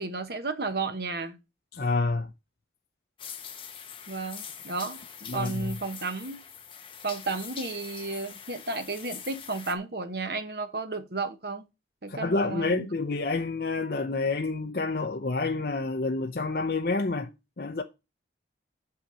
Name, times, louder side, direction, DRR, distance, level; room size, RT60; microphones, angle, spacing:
voice 1, 0.0-1.4 4.1-5.0 5.3-6.4 7.0-11.6 12.0-12.9, right 3 dB, 55° right, 1.1 m, -33 dB
voice 2, 1.7-2.3 5.3-5.7 12.1-17.3 17.6-17.8, left 3 dB, 55° left, 0.6 m, -28 dB
sound 1, 3.2-9.7, left 7 dB, 30° left, 1.0 m, -43 dB
7.3 x 5.8 x 6.4 m
head